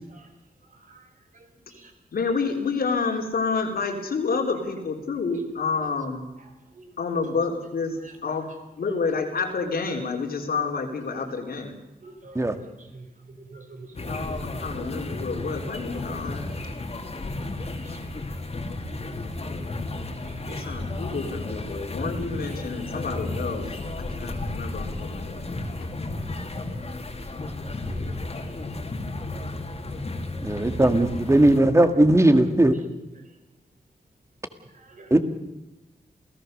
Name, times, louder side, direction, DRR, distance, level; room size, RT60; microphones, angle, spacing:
voice 1, 0.8-1.1 1.7-1.9 5.7-5.8 6.7-6.9 8.0-8.1 12.0-14.8 17.7-18.0 20.3-20.8 22.5-22.6 26.2-26.3 27.6-28.0 34.7-35.1, right 3 dB, 60° right, 5 dB, 4.3 m, -47 dB
voice 2, 2.1-6.2 7.0-8.5 8.8-11.7 14.1-16.6 20.5-23.7 24.0-25.4 25.8-25.9, left 4 dB, 90° left, 3 dB, 3.6 m, -29 dB
sound 1, 14.0-31.6, left 2 dB, 45° left, 2.7 m, -33 dB
voice 3, 30.4-32.8 35.1-35.2, right 1 dB, 20° right, 8 dB, 2.0 m, -18 dB
28.0 x 17.5 x 6.7 m, 0.99 s
wide cardioid pair, 105°, 15 cm